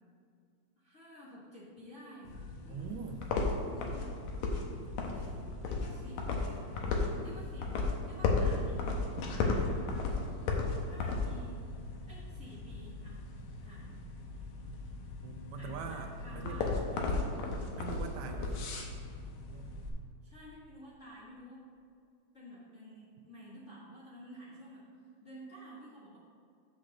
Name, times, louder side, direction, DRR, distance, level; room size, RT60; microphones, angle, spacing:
voice 1, 0.8-3.1 3.7-4.2 5.1-8.8 9.3-10.2 10.8-11.6 12.1-13.2 13.6-14.0 15.5-17.6 20.2-21.6 22.3-24.8 25.2-26.2, equal, 35° left, -8 dB, 1.2 m, -51 dB
sound 1, 2.2-19.9, left 3 dB, 80° left, 2.3 m, -35 dB
voice 2, 2.7-3.2 15.2-16.6 17.1-17.2 17.8-18.7 19.5-19.7, right 6 dB, 80° right, 4 dB, 1.9 m, -42 dB
6.3 x 5.8 x 6.3 m, 2.3 s
omnidirectional pair, 3.3 m